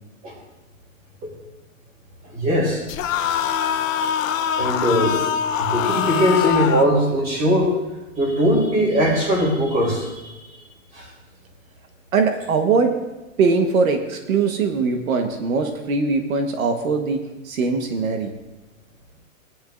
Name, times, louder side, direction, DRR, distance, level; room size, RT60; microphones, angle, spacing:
voice 1, 2.3-2.8 4.5-5.2 5.6-7.7 8.2-10.6 10.9-11.1, equal, 20° right, -1 dB, 3.2 m, -20 dB
sound 1, 2.9-6.9, left 8 dB, 75° left, 0.9 m, -23 dB
voice 2, 12.1-12.9 13.4-17.2 17.4-18.3, right 4 dB, 85° right, 5 dB, 1.4 m, -21 dB
18.5 x 10.5 x 2.6 m, 1.1 s
hypercardioid pair, 160°, 40 cm